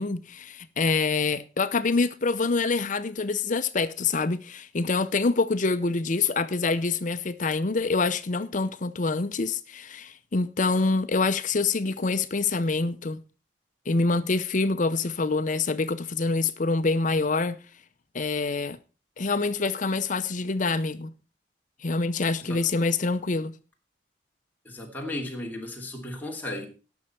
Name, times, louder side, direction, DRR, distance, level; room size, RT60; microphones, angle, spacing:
voice 1, 0.0-13.2 13.9-17.6 18.1-18.8 19.2-21.1 21.8-23.6, left 3 dB, 45° left, 0.6 m, -26 dB
voice 2, 24.6-26.7, left 1 dB, 10° left, 2.5 m, -35 dB
18.0 x 6.5 x 4.4 m
head